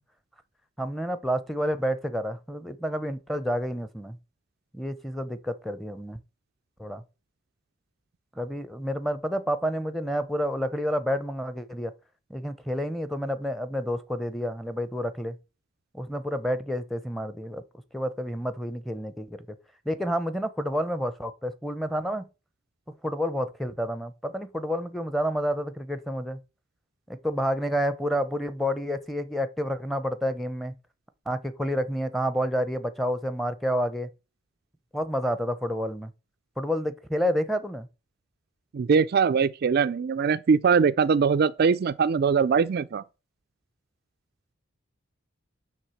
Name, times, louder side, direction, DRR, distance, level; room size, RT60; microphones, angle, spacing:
voice 1, 0.8-4.2 4.7-6.2 6.8-7.0 8.4-11.9 12.3-15.4 15.9-17.6 17.9-19.5 19.9-22.2 23.0-26.4 27.1-30.7 31.3-34.1 34.9-36.1 36.6-37.9, equal, ahead, 0.7 m, -29 dB
voice 2, 38.7-43.0, right 5 dB, 50° right, 0.3 m, -22 dB
9.8 x 3.5 x 7.1 m
head